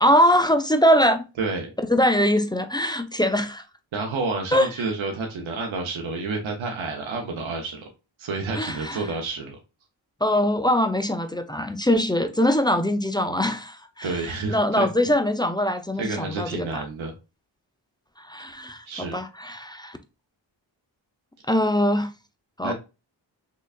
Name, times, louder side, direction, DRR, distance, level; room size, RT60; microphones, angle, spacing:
voice 1, 0.0-1.3 1.9-3.6 4.5-4.7 8.5-9.0 10.2-14.2 14.5-16.8 18.2-20.0 21.5-22.1 22.6-22.7, equal, 10° left, 0.5 m, -22 dB
voice 2, 1.4-1.7 3.9-7.9 8.2-9.6 14.0-14.9 16.0-17.1 18.8-19.2 22.6-22.7, right 3 dB, 90° right, 0.8 m, -29 dB
3.9 x 3.2 x 2.3 m
cardioid pair, 45°, 46 cm